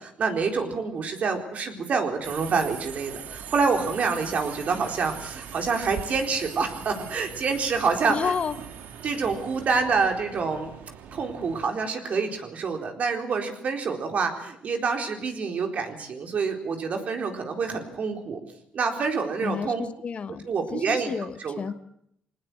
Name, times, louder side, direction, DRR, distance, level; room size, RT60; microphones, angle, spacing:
voice 1, 0.0-8.3 9.0-10.7 11.1-18.4 18.7-19.8 20.5-21.1 21.4-21.6, right 5 dB, 55° right, 4 dB, 4.1 m, -27 dB
Subway metro underground, 2.2-11.7, right 8 dB, 80° right, 2.0 m, -41 dB
voice 2, 8.1-8.6 19.4-21.7, left 6 dB, 45° left, 11 dB, 1.3 m, -31 dB
21.5 x 19.0 x 7.9 m, 0.71 s
cardioid pair, 95°, 3 cm